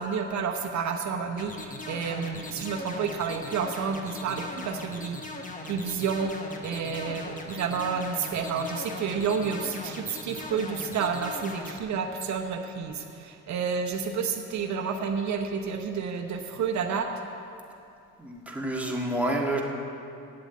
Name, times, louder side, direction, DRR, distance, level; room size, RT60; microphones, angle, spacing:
voice 1, 0.0-5.2 5.7-17.1, right 6 dB, 70° right, 4 dB, 0.9 m, -30 dB
sound 1, 1.4-11.8, left 2 dB, 25° left, 1.2 m, -39 dB
voice 2, 18.2-19.6, right 1 dB, 5° right, -2 dB, 1.7 m, -28 dB
8.7 x 7.9 x 8.2 m, 2.7 s
cardioid pair, 90°, 30 cm